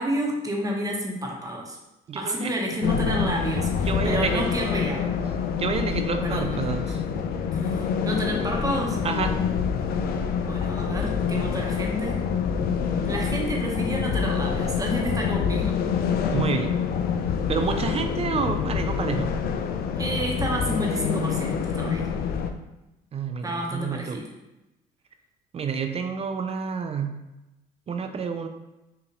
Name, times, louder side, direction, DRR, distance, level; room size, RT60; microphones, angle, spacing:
voice 1, 0.0-1.8 2.1-5.1 6.2-6.6 7.5-9.0 10.4-12.2 13.0-15.7 20.0-22.1 23.4-24.3, equal, 20° right, 0 dB, 1.0 m, -30 dB
voice 2, 2.1-2.5 3.9-4.5 5.6-7.0 9.0-9.3 16.3-16.8 17.5-19.3 23.1-24.2 25.5-27.1 27.9-28.5, right 6 dB, 35° right, 7 dB, 0.4 m, -29 dB
sound 1, 2.8-22.5, left 6 dB, 60° left, 0.4 m, -26 dB
5.7 x 2.5 x 3.0 m, 0.98 s
cardioid pair, 95°, 17 cm